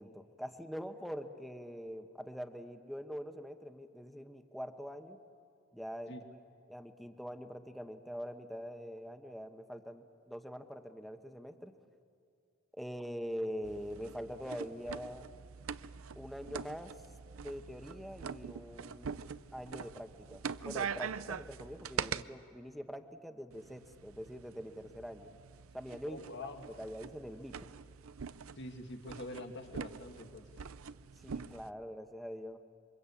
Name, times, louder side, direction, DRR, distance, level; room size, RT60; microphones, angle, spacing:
voice 1, 0.0-5.2 5.7-6.2 6.7-11.7 12.7-15.3 16.2-16.9 17.4-25.3 25.7-26.2 26.7-27.5 31.2-32.6, equal, ahead, 7 dB, 1.2 m, -44 dB
sound 1, 13.6-22.2 23.5-31.7, right 6 dB, 90° right, 0.6 m, -44 dB
voice 2, 26.1-26.6 28.6-30.5, left 1 dB, 60° left, 5 dB, 2.1 m, -45 dB
27.5 x 24.0 x 8.5 m, 2.5 s
head